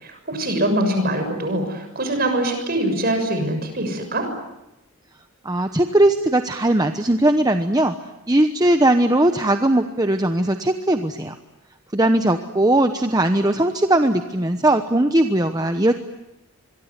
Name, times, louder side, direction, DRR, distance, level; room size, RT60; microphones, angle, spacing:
voice 1, 0.0-4.3, right 1 dB, 45° right, 7 dB, 6.6 m, -23 dB
voice 2, 5.4-7.9 8.3-11.3 11.9-15.9, right 1 dB, 15° right, 7 dB, 0.9 m, -19 dB
26.0 x 23.0 x 9.8 m, 0.93 s
head